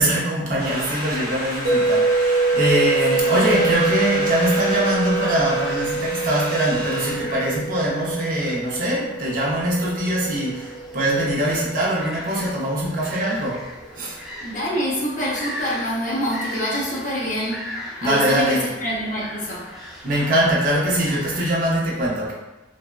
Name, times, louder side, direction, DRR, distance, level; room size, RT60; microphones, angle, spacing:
voice 1, 0.0-13.7 14.0-14.2 18.0-18.6 20.0-22.3, right 1 dB, 45° right, -5 dB, 0.6 m, -22 dB
sound 1, 0.6-7.1, equal, 65° left, 1.0 m, -31 dB
sound 2, 1.6-11.7, right 3 dB, 75° right, 0.8 m, -25 dB
voice 2, 2.9-3.7 14.4-17.7 18.0-19.7, equal, 45° left, -4 dB, 0.6 m, -26 dB
sound 3, 3.6-21.5, left 1 dB, ahead, 0.4 m, -39 dB
3.3 x 2.1 x 2.2 m, 1.1 s
head